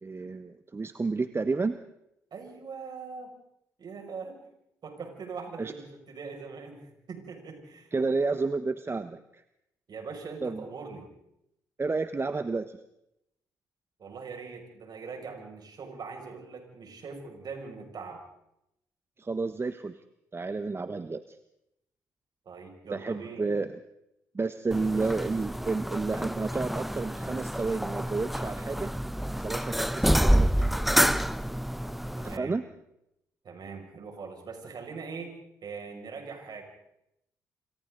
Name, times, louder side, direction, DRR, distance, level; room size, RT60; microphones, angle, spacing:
voice 1, 0.0-1.7 5.6-5.7 7.9-9.4 10.4-10.6 11.8-12.8 19.2-20.0 20.3-21.4 22.9-23.8 24.3-28.9 29.4-30.6 32.2-32.6, right 3 dB, 30° right, 11 dB, 1.1 m, -31 dB
voice 2, 2.3-3.3 3.8-4.4 4.8-7.9 9.9-11.1 14.0-18.2 22.4-23.5 32.1-32.6 33.4-36.6, right 5 dB, 50° right, 2 dB, 6.6 m, -41 dB
sound 1, 24.7-32.4, equal, ahead, 0.8 m, -28 dB
28.0 x 24.5 x 4.0 m, 0.82 s
hypercardioid pair, 50°, 9 cm